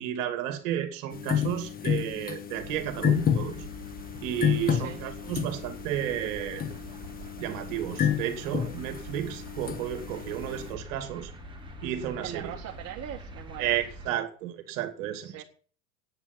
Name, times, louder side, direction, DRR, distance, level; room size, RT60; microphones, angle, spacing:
voice 1, 0.0-3.7 4.2-6.6 7.4-11.3 11.8-12.5 13.6-15.4, right 11 dB, 60° right, 2.6 m, -32 dB
sound 1, 1.1-10.7, left 8 dB, 20° left, 1.2 m, -31 dB
sound 2, 2.6-14.1, right 1 dB, 10° right, 3.0 m, -45 dB
voice 2, 12.2-13.8 15.2-15.4, right 10 dB, 35° right, 1.7 m, -40 dB
9.6 x 9.1 x 9.2 m
supercardioid pair, 120°, 45 cm